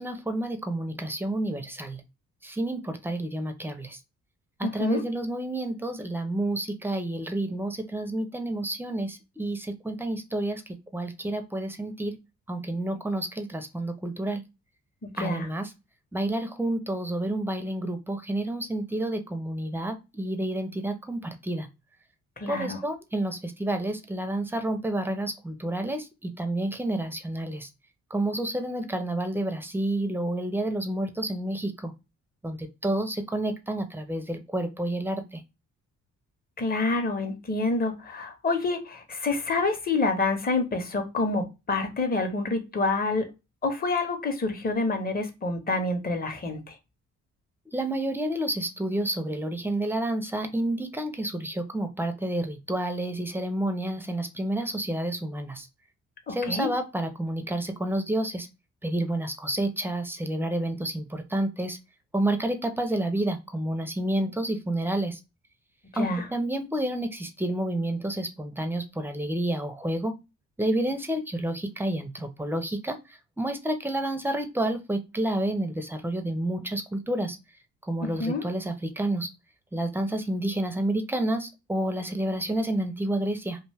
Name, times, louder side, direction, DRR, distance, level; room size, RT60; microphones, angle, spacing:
voice 1, 0.0-2.0 2.4-4.0 4.6-12.2 12.5-14.4 15.2-15.7 16.1-21.7 22.5-27.7 28.1-31.9 32.4-35.4 47.7-55.7 56.3-58.5 58.8-61.8 62.1-65.2 66.0-70.1 70.6-73.0 73.4-77.4 77.9-79.3 79.7-83.6, right 1 dB, 5° right, 7 dB, 0.4 m, -29 dB
voice 2, 4.6-5.0 15.0-15.5 22.4-22.8 36.6-43.3 43.6-46.7 56.3-56.7 65.9-66.3 78.0-78.4, left 3 dB, 30° left, 6 dB, 0.7 m, -27 dB
2.5 x 2.2 x 3.3 m, 0.26 s
cardioid pair, 90°, 30 cm